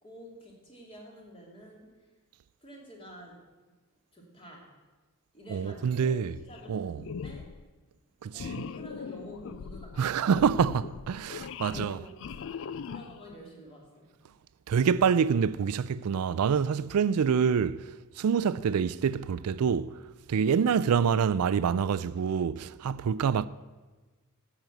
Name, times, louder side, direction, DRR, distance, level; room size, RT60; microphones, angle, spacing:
voice 1, 0.0-1.9 2.6-3.4 4.1-4.7 5.3-7.5 8.3-10.5 11.7-12.1 12.9-14.1, equal, 25° left, 2.6 m, -48 dB
voice 2, 5.5-6.3 6.7-7.0 8.2-8.4 10.0-12.0 14.7-17.8 18.2-19.9 20.3-23.5, right 7 dB, 90° right, 0.4 m, -26 dB
sound 1, 6.4-6.7 7.0-7.6 8.4-13.3, left 6 dB, 60° left, 0.4 m, -40 dB
10.5 x 7.5 x 7.9 m
head